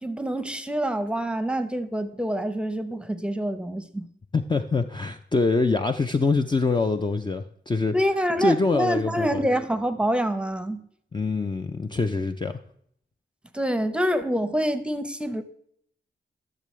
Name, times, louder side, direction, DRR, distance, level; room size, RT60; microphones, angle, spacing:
voice 1, 0.0-4.1 7.9-10.8 13.5-15.4, equal, 5° right, 0.8 m, -26 dB
voice 2, 4.3-7.9 8.4-9.4 11.1-12.6, left 3 dB, 25° left, 0.5 m, -24 dB
12.0 x 6.8 x 3.2 m
cardioid pair, 80°, 20 cm